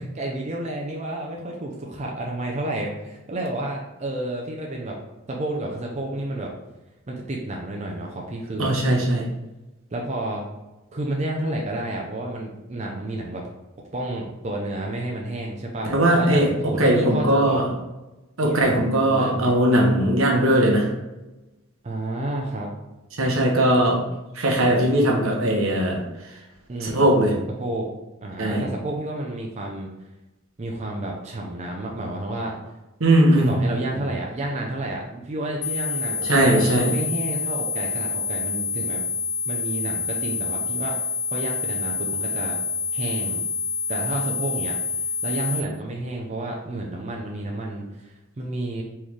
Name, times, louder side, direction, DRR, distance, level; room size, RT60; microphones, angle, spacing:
voice 1, 0.1-5.0 5.3-6.5 7.1-8.7 9.9-10.4 10.9-13.4 13.9-17.6 18.4-18.6 19.1-19.5 21.8-22.7 26.7-27.2 27.6-27.9 28.2-29.9 30.6-32.6 33.3-39.0 39.4-41.0 41.3-42.6 42.9-43.4 43.9-44.8 45.2-48.8, right 1 dB, 35° right, -1 dB, 0.6 m, -30 dB
voice 2, 8.6-9.3 15.9-17.6 18.4-20.9 23.2-24.0 24.3-26.0 26.8-27.3 28.4-28.6 33.0-33.5 33.9-34.0 36.3-36.9, right 1 dB, 75° right, -1 dB, 1.2 m, -19 dB
sound 1, 35.6-45.6, left 5 dB, 50° left, 0.5 m, -27 dB
4.4 x 3.2 x 3.6 m, 1.0 s
head